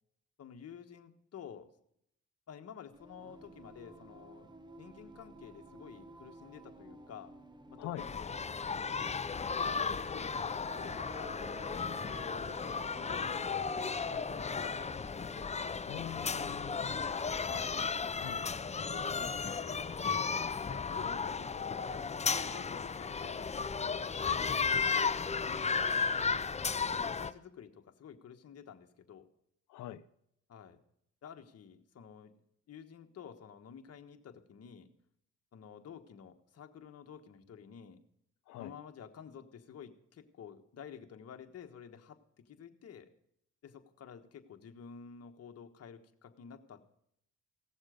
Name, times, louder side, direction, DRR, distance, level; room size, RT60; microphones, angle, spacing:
voice 1, 0.4-1.7 2.5-4.5 4.8-7.3 7.7-8.4 9.6-13.5 14.1-15.2 17.5-17.8 18.8-20.3 20.7-25.1 25.4-25.8 26.6-29.3 30.5-30.8 31.2-32.3 32.7-34.9 35.5-38.0 38.6-42.2 42.4-43.1 43.6-46.8, left 7 dB, 55° left, 6 dB, 1.4 m, -51 dB
Singing, 2.9-16.1, right 2 dB, 15° right, 1.1 m, -52 dB
sound 1, 8.0-27.3, left 5 dB, 20° left, 0.6 m, -34 dB
voice 2, 15.8-17.2 18.2-18.4 29.7-30.0 38.5-38.7, left 12 dB, 85° left, 12 dB, 0.7 m, -44 dB
17.0 x 7.2 x 5.1 m, 0.73 s
cardioid pair, 90°, 30 cm